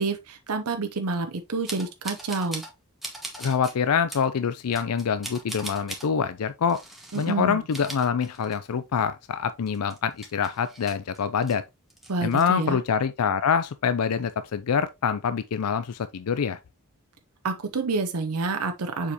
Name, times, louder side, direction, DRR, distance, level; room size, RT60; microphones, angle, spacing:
voice 1, 0.0-2.6 7.1-7.6 12.1-12.8 17.4-19.1, right 3 dB, 90° right, 0.8 m, -28 dB
sound 1, 1.7-2.7 3.0-3.7 4.1-4.3 4.7-6.1 6.7-7.3 7.6-8.8 9.1-9.2 9.7-11.6 11.9-12.4, right 1 dB, ahead, 1.4 m, -39 dB
voice 2, 3.4-6.8 7.1-11.6 12.2-16.6, left 6 dB, 90° left, 0.5 m, -25 dB
6.8 x 5.0 x 2.9 m
head